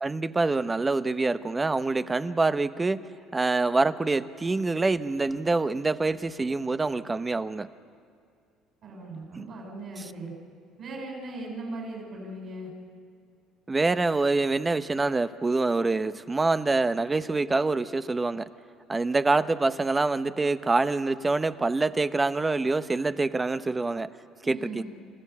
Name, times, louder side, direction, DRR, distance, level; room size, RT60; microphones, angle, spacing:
voice 1, 0.0-7.7 9.4-9.5 13.7-18.5 18.9-24.1 24.5-24.8, right 3 dB, 20° right, 12 dB, 0.8 m, -26 dB
voice 2, 8.8-10.3 10.8-12.7 24.4-24.9, right 2 dB, 55° right, -1 dB, 7.2 m, -38 dB
29.0 x 15.0 x 8.5 m, 2.3 s
cardioid pair, 100°, 0 cm